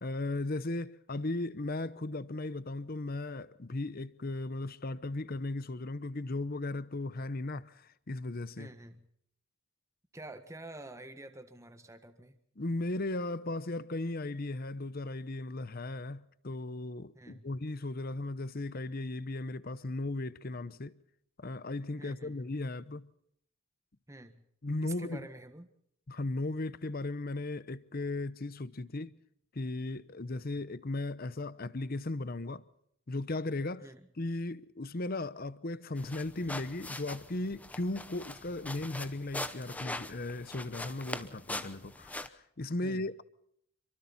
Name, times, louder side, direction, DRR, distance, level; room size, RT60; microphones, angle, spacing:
voice 1, 0.0-8.7 12.6-20.9 21.4-23.1 24.6-25.3 26.1-29.2 29.5-32.6 33.1-33.9 34.2-42.3 42.6-43.2, left 2 dB, 45° left, 0.8 m, -36 dB
voice 2, 8.6-9.0 10.1-12.3 17.1-17.5 22.0-22.5 24.1-24.4 24.8-25.7 33.8-34.1 42.8-43.0, right 2 dB, 15° right, 1.5 m, -48 dB
sound 1, 36.0-42.3, left 1 dB, 5° left, 0.8 m, -42 dB
28.0 x 24.0 x 4.2 m
head